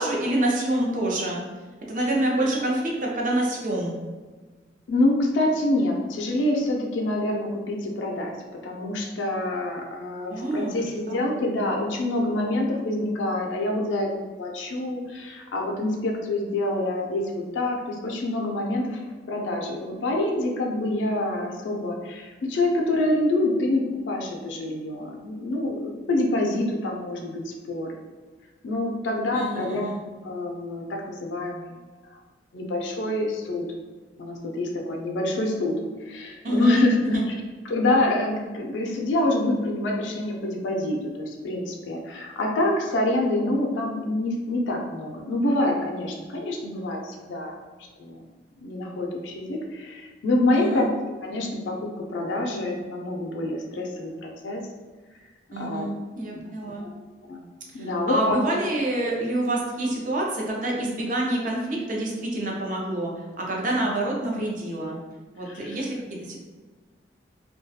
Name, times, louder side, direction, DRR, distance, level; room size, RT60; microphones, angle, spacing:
voice 1, 0.0-1.4 1.9-3.9 10.3-11.2 29.3-30.0 36.4-36.8 37.1-37.2 50.5-50.9 55.5-56.8 57.8-63.1 63.4-65.0 65.3-66.4, right 1 dB, 45° right, -2 dB, 0.5 m, -27 dB
voice 2, 4.9-8.3 8.6-19.0 19.3-27.9 28.6-29.9 30.2-31.6 32.5-33.6 34.2-35.8 36.1-37.3 37.6-47.6 48.0-48.2 48.6-50.9 51.2-54.6 55.6-55.9 56.3-56.4 56.8-56.9 57.3-57.4 57.7-58.4 65.4-65.8, left 1 dB, 90° left, 1 dB, 0.4 m, -26 dB
2.3 x 2.2 x 2.6 m, 1.3 s
head